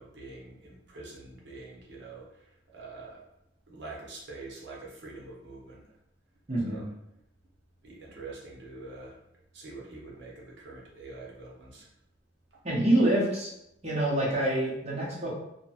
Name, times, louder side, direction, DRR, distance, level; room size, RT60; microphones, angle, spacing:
voice 1, 0.0-3.2 3.7-5.9 6.6-6.9 7.8-9.2 9.5-11.9 12.5-12.6, right 3 dB, 65° right, -4 dB, 0.8 m, -45 dB
voice 2, 6.5-6.8 12.6-13.5 13.8-15.3, right 1 dB, 35° right, -5 dB, 0.7 m, -26 dB
2.8 x 2.1 x 2.8 m, 0.82 s
head